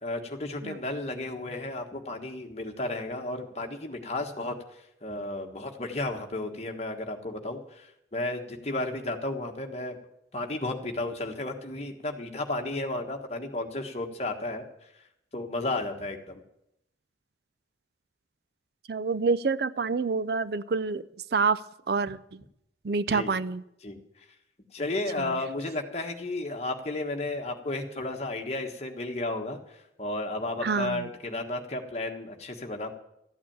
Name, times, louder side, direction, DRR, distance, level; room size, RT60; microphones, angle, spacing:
voice 1, 0.0-10.0 10.3-14.9 15.3-16.4 23.1-23.3 23.8-24.0 24.7-32.9, left 2 dB, 35° left, 3 dB, 1.5 m, -33 dB
voice 2, 18.9-21.1 21.3-21.6 21.9-22.4 22.8-23.6 25.2-25.4 30.6-31.1, right 4 dB, 60° right, 17 dB, 0.5 m, -27 dB
13.5 x 8.6 x 8.8 m, 0.80 s
head